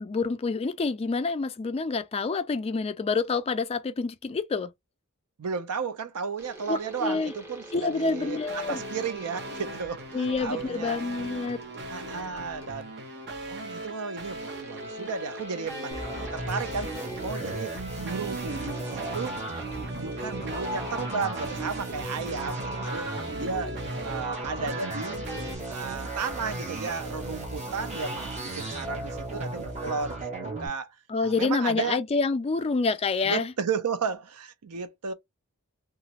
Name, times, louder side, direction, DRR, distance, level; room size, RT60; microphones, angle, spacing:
voice 1, 0.0-4.7 6.7-7.3 7.7-8.8 10.1-11.6 31.1-33.5, left 4 dB, 25° left, 0.3 m, -27 dB
voice 2, 5.4-11.0 11.9-12.9 13.5-16.0 16.3-16.9 17.2-17.7 18.0-19.4 19.7-23.1 23.3-25.2 25.7-30.9 31.2-32.0 33.2-35.1, right 5 dB, 85° right, 0.5 m, -34 dB
sound 1, 6.4-13.0 14.4-21.0, right 1 dB, 10° right, 0.9 m, -47 dB
sound 2, 8.2-25.6, right 1 dB, 50° right, 0.8 m, -39 dB
sound 3, 15.9-30.7, right 2 dB, 30° right, 0.9 m, -35 dB
2.9 x 2.4 x 2.7 m
head